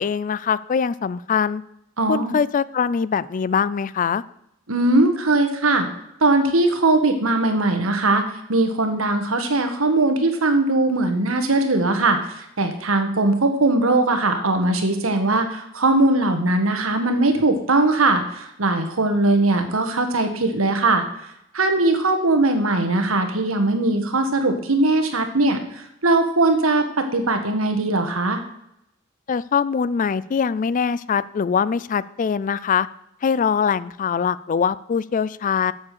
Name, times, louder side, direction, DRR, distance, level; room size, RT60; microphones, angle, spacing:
voice 1, 0.0-1.6 2.1-4.2 29.3-32.9 33.2-35.7, left 6 dB, 40° left, 18 dB, 0.3 m, -22 dB
voice 2, 2.0-2.3 4.7-5.9 6.2-8.2 8.5-21.0 21.5-26.8 27.1-28.4, right 2 dB, 85° right, 7 dB, 1.5 m, -20 dB
8.3 x 7.3 x 6.7 m, 0.78 s
head